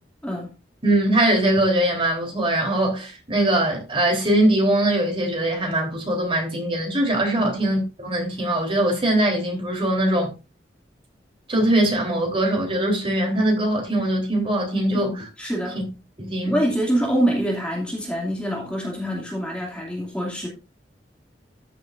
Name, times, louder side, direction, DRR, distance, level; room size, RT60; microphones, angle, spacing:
voice 1, 0.8-10.3 11.5-15.1 15.8-15.9 16.2-16.6, right 1 dB, 30° right, 3.6 m, -21 dB
voice 2, 14.9-15.8 16.4-20.5, equal, 5° left, 2.4 m, -25 dB
14.0 x 7.5 x 2.6 m
head